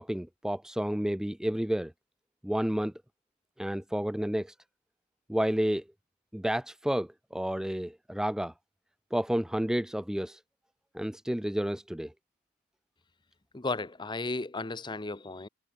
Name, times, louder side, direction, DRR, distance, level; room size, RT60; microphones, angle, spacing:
voice 1, 0.0-1.9 2.4-2.9 3.6-4.5 5.3-5.8 6.3-8.5 9.1-10.4 10.9-12.1, equal, 5° right, 0.3 m, -30 dB
voice 2, 13.5-15.5, left 3 dB, 25° left, 0.8 m, -34 dB
head